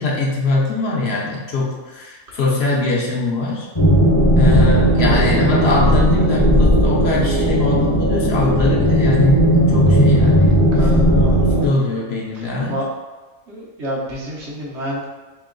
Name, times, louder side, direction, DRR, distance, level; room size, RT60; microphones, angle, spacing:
voice 1, 0.0-3.7 4.4-9.4 9.7-10.9 11.6-12.8, left 3 dB, 60° left, -2 dB, 0.8 m, -22 dB
sound 1, 3.7-11.7, equal, 30° left, 0.7 m, -15 dB
voice 2, 5.0-5.3 10.7-11.7 12.7-12.8 13.5-15.0, equal, 65° right, -4 dB, 1.2 m, -29 dB
3.4 x 3.0 x 3.7 m, 1.2 s
omnidirectional pair, 1.3 m